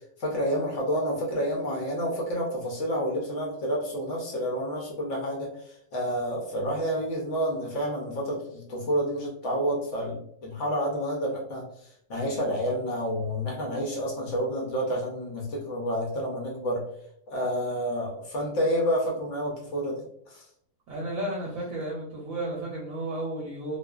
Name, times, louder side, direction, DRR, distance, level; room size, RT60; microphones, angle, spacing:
voice 1, 0.2-16.8 17.3-20.4, equal, 60° left, -2 dB, 0.8 m, -29 dB
voice 2, 20.9-23.8, right 1 dB, 70° right, -3 dB, 0.9 m, -33 dB
2.5 x 2.4 x 2.2 m, 0.70 s
omnidirectional pair, 1.7 m